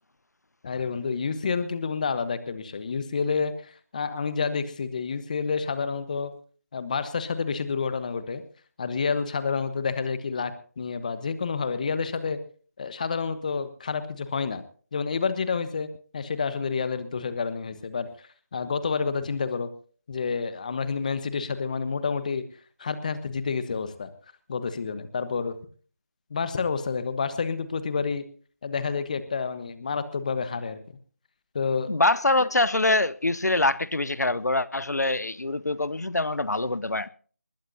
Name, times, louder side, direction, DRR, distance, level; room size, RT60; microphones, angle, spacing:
voice 1, 0.6-6.3 6.7-8.4 8.8-12.4 12.8-14.6 14.9-15.9 16.1-18.1 18.5-19.7 20.1-22.4 22.8-24.1 24.5-25.6 26.3-28.2 28.6-30.8 31.5-31.9 32.4-32.5, left 5 dB, 30° left, 1.3 m, -29 dB
voice 2, 31.9-37.1, left 2 dB, 90° left, 0.8 m, -24 dB
21.0 x 15.5 x 2.8 m
figure-of-eight pair, 165°, 9 cm